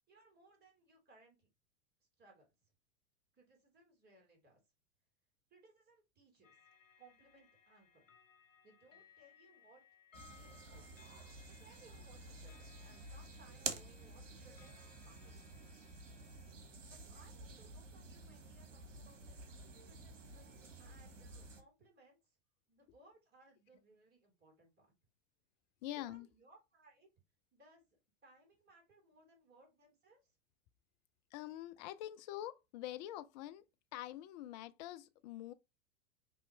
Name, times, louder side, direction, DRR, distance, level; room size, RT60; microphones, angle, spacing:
voice 1, 0.1-1.5 2.2-2.5 3.3-4.6 5.5-6.6 7.0-8.1 8.6-9.8 10.4-10.9 11.5-14.7 15.0-15.7 16.9-22.4 22.7-24.9 26.1-27.1 27.5-27.8 28.2-30.4, right 2 dB, 25° right, 2.8 m, -65 dB
sound 1, 6.4-16.5, left 7 dB, 80° left, 1.0 m, -65 dB
sound 2, 10.1-21.6, right 4 dB, 70° right, 1.2 m, -50 dB
voice 2, 25.8-26.3 31.3-33.6 33.9-35.5, left 14 dB, 35° left, 0.5 m, -45 dB
5.4 x 3.0 x 3.1 m
figure-of-eight pair, 90°, 38 cm